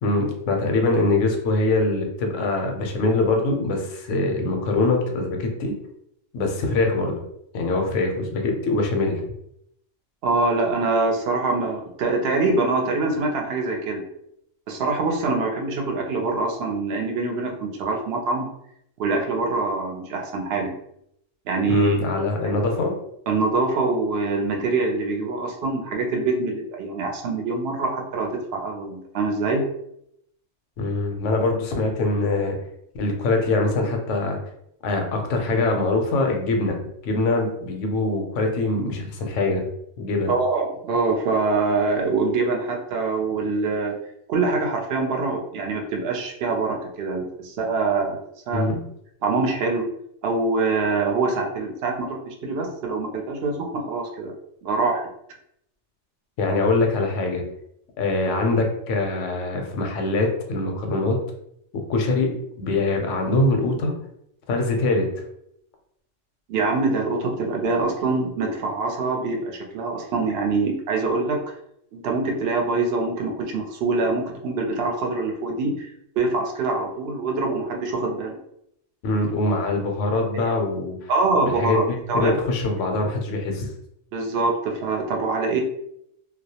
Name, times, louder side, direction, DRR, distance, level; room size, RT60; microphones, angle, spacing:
voice 1, 0.0-5.7 6.3-7.2 7.5-9.2 21.7-22.9 30.8-32.5 33.0-34.4 34.8-39.6 40.0-40.3 48.5-48.8 56.4-57.4 58.0-61.2 61.9-62.3 62.6-63.9 64.5-65.1 79.0-80.9 81.4-83.7, left 2 dB, 80° left, 3 dB, 0.9 m, -23 dB
voice 2, 10.2-14.0 14.7-18.5 19.0-20.7 21.5-22.0 23.3-29.6 40.3-44.0 44.3-48.2 48.5-48.7 49.2-49.9 50.2-54.3 54.6-55.0 66.5-71.4 71.9-75.9 76.2-78.4 81.1-82.3 82.8-82.9 84.1-85.6, right 3 dB, 65° right, 1 dB, 0.7 m, -24 dB
2.3 x 2.0 x 2.7 m, 0.74 s
omnidirectional pair, 1.2 m